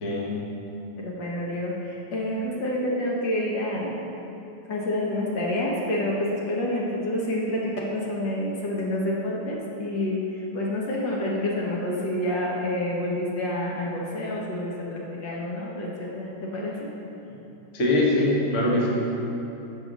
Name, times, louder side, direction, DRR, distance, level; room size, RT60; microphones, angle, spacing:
voice 1, 0.0-0.5 17.7-18.9, left 1 dB, 45° left, -3 dB, 1.3 m, -23 dB
voice 2, 1.0-4.0 4.7-16.9, left 1 dB, 65° left, -3 dB, 1.6 m, -28 dB
6.6 x 5.6 x 6.1 m, 3.0 s
omnidirectional pair, 2.2 m